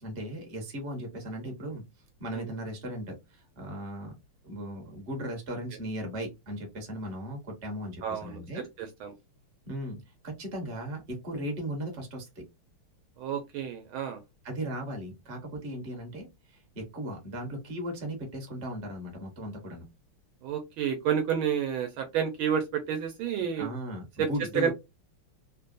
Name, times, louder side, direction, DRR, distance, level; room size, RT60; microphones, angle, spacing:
voice 1, 0.0-1.8 2.2-4.1 4.4-8.7 9.7-12.4 14.4-19.9 23.6-24.7, equal, 35° right, 1.1 m, -37 dB
voice 2, 8.0-9.1 13.2-14.2 20.4-23.7 24.2-24.3 24.5-24.7, right 8 dB, 75° right, 1.4 m, -30 dB
3.5 x 2.2 x 2.5 m
omnidirectional pair, 2.4 m